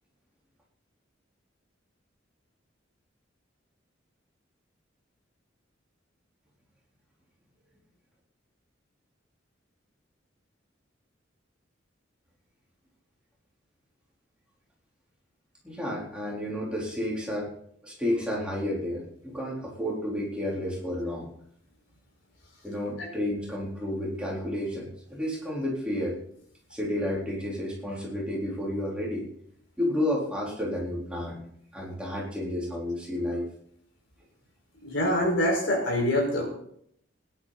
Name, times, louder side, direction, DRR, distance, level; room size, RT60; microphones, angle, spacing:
voice 1, 15.6-17.5 17.8-21.3 22.6-26.2 26.7-29.2 29.8-31.4 31.7-33.5, left 1 dB, 5° right, -4 dB, 4.0 m, -31 dB
voice 2, 34.8-36.5, left 1 dB, 65° left, 0 dB, 5.2 m, -25 dB
19.5 x 11.0 x 4.2 m, 0.68 s
head